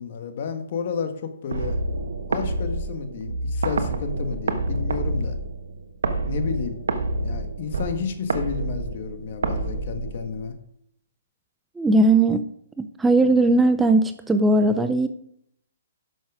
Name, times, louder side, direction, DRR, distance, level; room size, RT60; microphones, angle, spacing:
voice 1, 0.0-1.8 2.3-5.4 6.3-6.8 7.2-10.5, left 6 dB, 50° left, 7 dB, 1.6 m, -31 dB
sound 1, 1.5-10.6, right 2 dB, 80° right, 1.2 m, -28 dB
voice 2, 11.8-12.4 12.8-15.1, right 2 dB, 5° right, 9 dB, 0.5 m, -18 dB
11.0 x 6.3 x 5.1 m, 0.70 s
hypercardioid pair, 150°, 0 cm